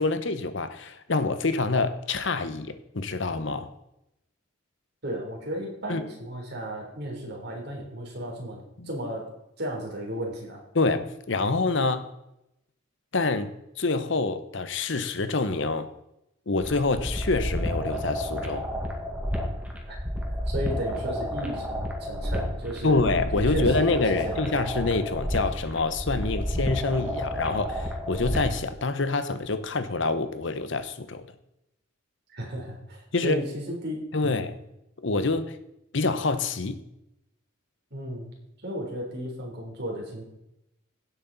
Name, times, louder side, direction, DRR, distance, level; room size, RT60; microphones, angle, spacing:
voice 1, 0.0-3.7 5.9-6.0 8.8-8.9 10.7-12.1 13.1-15.9 16.5-18.7 22.8-31.3 33.1-33.4 34.1-34.6 35.0-35.6 35.9-36.8, left 3 dB, 60° left, 11 dB, 1.0 m, -26 dB
voice 2, 5.0-10.6 19.9-20.0 20.5-24.4 32.3-34.5 37.9-40.2, right 1 dB, 55° right, 0 dB, 3.5 m, -34 dB
sound 1, 16.6-28.6, equal, 5° right, 1.8 m, -31 dB
16.5 x 8.3 x 4.1 m, 0.86 s
head